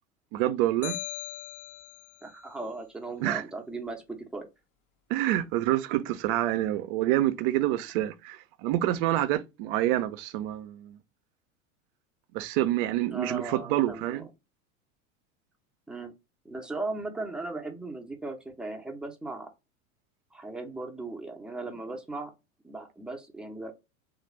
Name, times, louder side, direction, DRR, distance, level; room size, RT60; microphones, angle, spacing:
voice 1, 0.3-1.0 3.2-3.4 5.1-11.0 12.3-14.3, right 14 dB, 40° right, 0.5 m, -27 dB
sound 1, 0.8-2.2, left 14 dB, 55° left, 0.8 m, -38 dB
voice 2, 2.2-4.5 13.1-14.3 15.9-16.1 16.4-19.5 20.3-22.3 22.6-23.7, right 2 dB, ahead, 0.6 m, -37 dB
3.2 x 2.5 x 3.0 m
figure-of-eight pair, 85°, 44 cm